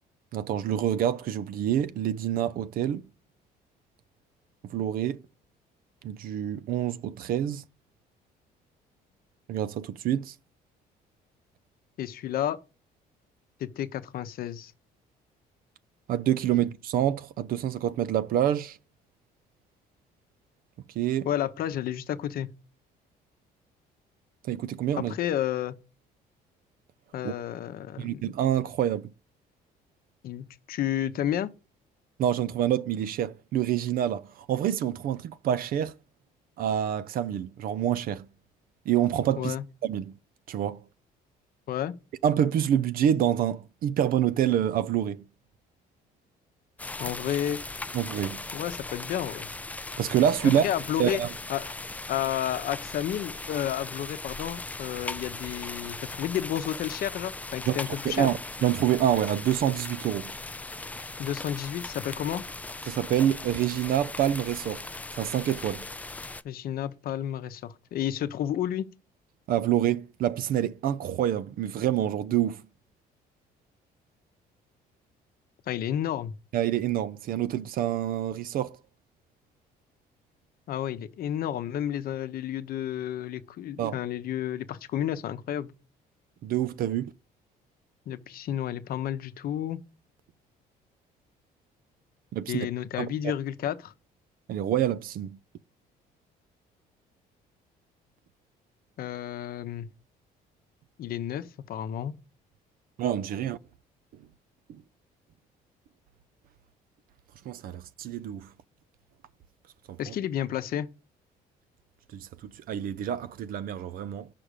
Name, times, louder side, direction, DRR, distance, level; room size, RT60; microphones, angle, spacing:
voice 1, 0.3-3.0 4.7-5.2 6.0-7.6 9.5-10.3 16.1-18.8 21.0-21.3 24.4-25.1 27.2-27.3 28.0-29.1 32.2-35.9 36.6-38.3 38.9-39.5 39.8-40.1 40.5-40.8 42.2-45.2 47.9-48.4 50.0-50.7 51.0-51.3 57.7-57.8 58.0-60.3 62.9-64.8 65.2-65.8 69.5-72.6 76.5-78.8 83.8-84.0 86.4-87.1 92.3-92.7 93.0-93.3 94.5-95.4 103.0-103.6 107.5-108.5 109.9-110.1 112.1-112.3 112.7-114.3, right 10 dB, 60° right, 0.5 m, -27 dB
voice 2, 12.0-12.6 13.6-14.7 21.2-22.5 25.0-25.8 27.1-28.2 30.2-31.5 39.4-39.6 41.7-41.9 47.0-47.6 48.5-49.5 50.4-51.2 51.5-51.7 52.1-58.3 61.2-62.4 66.4-68.9 75.7-76.3 80.7-85.7 88.1-89.8 92.5-93.9 99.0-99.9 101.0-102.1 110.0-110.9, left 11 dB, 60° left, 0.8 m, -31 dB
sound 1, 46.8-66.4, left 2 dB, 10° left, 0.3 m, -39 dB
5.8 x 5.0 x 6.6 m
cardioid pair, 110°, 17 cm